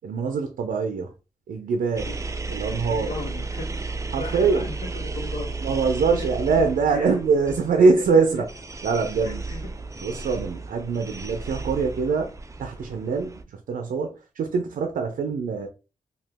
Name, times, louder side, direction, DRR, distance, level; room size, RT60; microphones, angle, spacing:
voice 1, 0.0-1.1 1.5-2.2 2.5-3.1 4.1-4.7 5.6-8.5 8.8-9.4 10.0-12.3 12.6-15.7, right 4 dB, 85° right, 0.4 m, -23 dB
sound 1, 2.0-13.4, right 3 dB, 20° right, 0.4 m, -34 dB
voice 2, 2.9-5.6 6.1-6.6 6.9-7.2 7.5-8.4 9.2-9.7, left 2 dB, 70° left, 0.8 m, -37 dB
2.8 x 2.3 x 3.4 m
cardioid pair, 60°, 14 cm